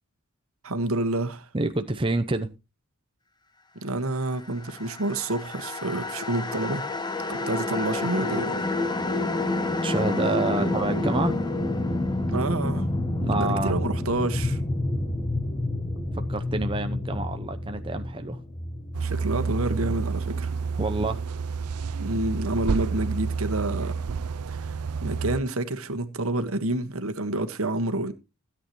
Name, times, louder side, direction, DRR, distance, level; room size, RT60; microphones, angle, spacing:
voice 1, 0.6-1.5 3.8-6.8 7.3-8.6 10.5-10.7 12.3-12.9 13.3-14.6 19.0-20.5 22.0-23.9 24.5-24.7 25.0-28.1, right 2 dB, 70° right, 1.6 m, -28 dB
voice 2, 1.5-2.5 9.8-11.4 13.2-13.8 16.1-18.4 20.8-21.2, right 2 dB, 25° right, 0.7 m, -28 dB
sound 1, 4.6-19.8, left 2 dB, 20° left, 1.0 m, -29 dB
sound 2, 18.9-25.4, right 5 dB, 85° right, 0.5 m, -29 dB
16.0 x 8.7 x 3.1 m
head